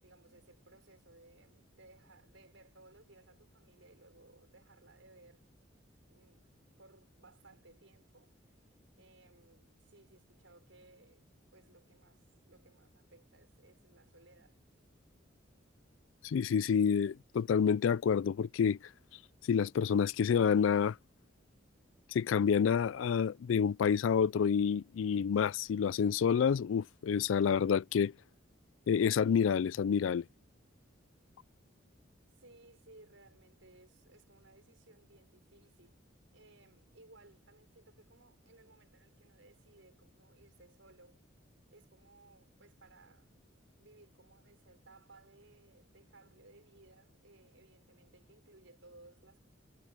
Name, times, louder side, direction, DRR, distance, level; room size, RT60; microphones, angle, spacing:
voice 1, 0.0-5.4 6.1-6.5 6.8-8.4 9.0-14.6 32.3-36.0 36.3-41.2 41.7-43.3 43.8-49.4, right 2 dB, 85° right, 5.8 m, -61 dB
voice 2, 16.2-18.8 19.5-21.0 22.1-28.1 28.9-30.2, left 7 dB, 90° left, 0.3 m, -28 dB
head